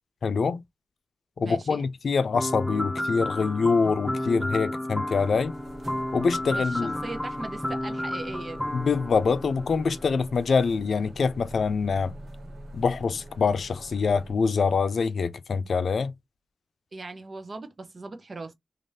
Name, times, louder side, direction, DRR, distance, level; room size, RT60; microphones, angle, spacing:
voice 1, 0.2-0.6 1.4-5.6 6.1-6.9 8.7-12.1 12.7-16.1, left 5 dB, 80° left, 0.4 m, -25 dB
voice 2, 1.4-1.9 6.5-8.7 16.9-18.5, right 3 dB, 50° right, 0.7 m, -39 dB
sound 1, 2.3-10.2, left 1 dB, 10° left, 0.4 m, -32 dB
sound 2, 5.1-14.3, right 1 dB, 70° right, 1.0 m, -45 dB
2.6 x 2.5 x 3.3 m
cardioid pair, 65°, 0 cm